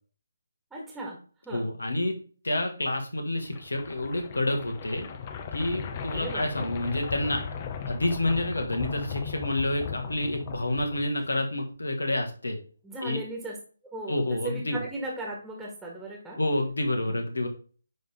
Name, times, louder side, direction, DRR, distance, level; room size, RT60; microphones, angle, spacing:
voice 1, 0.7-1.2 1.4-1.6 6.1-6.7 12.8-13.5 13.9-16.4 17.0-17.2, right 2 dB, 5° right, -2 dB, 1.7 m, -37 dB
voice 2, 1.5-2.2 2.4-5.1 5.5-7.4 7.9-12.6 13.0-13.2 14.1-14.8 16.4-17.5, left 1 dB, 75° left, 3 dB, 1.7 m, -28 dB
sound 1, 3.4-11.4, left 6 dB, 30° left, 0.7 m, -37 dB
10.0 x 3.6 x 3.6 m, 0.40 s
figure-of-eight pair, 145°, 0 cm